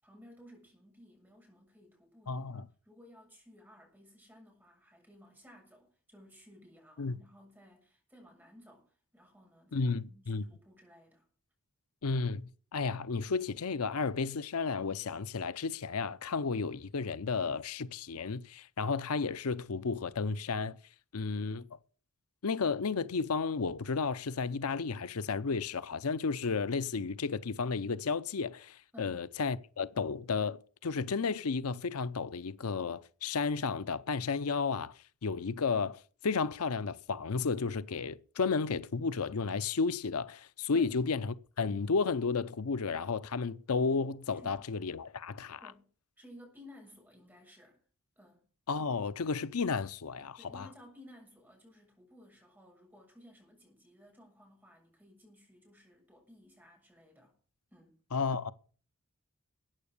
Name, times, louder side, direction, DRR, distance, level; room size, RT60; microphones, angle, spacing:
voice 1, 0.0-11.3 28.9-29.2 40.7-40.9 44.3-44.6 45.6-45.9 46.2-47.8 48.2-48.5 50.4-57.3 57.7-58.0, equal, 10° right, 7.2 m, -57 dB
voice 2, 2.3-2.7 7.0-7.2 9.7-10.4 12.0-20.8 21.1-21.7 22.4-45.6 48.7-50.7 58.1-58.5, left 4 dB, 90° left, 0.7 m, -33 dB
14.0 x 9.4 x 6.7 m
head